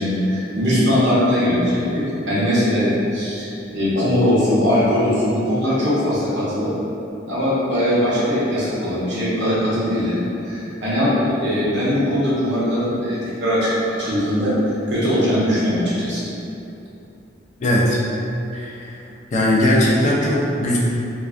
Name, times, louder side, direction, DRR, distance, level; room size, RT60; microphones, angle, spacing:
voice 1, 0.0-6.7 7.3-10.2 10.4-16.2, equal, 65° right, -8 dB, 0.7 m, -20 dB
voice 2, 17.6-18.0 18.5-19.0 19.3-20.8, left 1 dB, 40° left, -4 dB, 0.3 m, -18 dB
2.4 x 2.3 x 2.3 m, 2.8 s
head